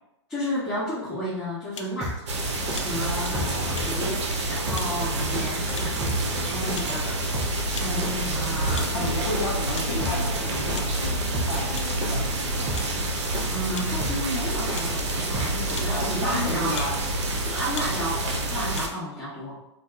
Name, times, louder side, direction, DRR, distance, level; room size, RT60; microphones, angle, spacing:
voice 1, 0.3-3.4 3.8-7.1 7.5-9.2 13.1-16.8 17.4-19.6, equal, 5° left, -15 dB, 1.2 m, -33 dB
sound 1, 1.7-1.9 2.7-2.9 3.7-3.9 4.7-4.9 5.7-6.0 6.7-6.9 7.7-7.9 8.7-8.9 9.7-9.9 10.7-10.9 11.7-11.9 12.7-12.9 13.7-13.9 14.7-14.9 15.7-15.9 16.7-16.9 17.7-17.9 18.7-18.9, left 5 dB, 85° left, 0.4 m, -38 dB
sound 2, 1.8-16.1, right 1 dB, 20° right, 0.7 m, -33 dB
sound 3, 2.3-18.9, right 1 dB, 70° right, 0.7 m, -28 dB
voice 2, 3.1-3.8 6.8-7.2 8.9-12.8 15.9-17.0, left 2 dB, 60° left, -3 dB, 0.7 m, -33 dB
2.7 x 2.3 x 3.5 m, 0.89 s
hypercardioid pair, 130°, 15 cm